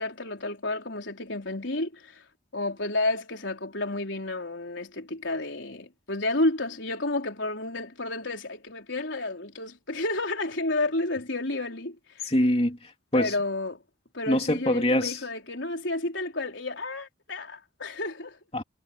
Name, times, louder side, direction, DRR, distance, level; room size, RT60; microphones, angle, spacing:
voice 1, 0.0-2.2 2.5-12.3 13.1-13.8 14.1-18.4, left 2 dB, 75° left, 4.1 m, -31 dB
voice 2, 12.2-13.3 14.3-15.2 18.5-18.6, left 1 dB, 30° left, 3.1 m, -24 dB
head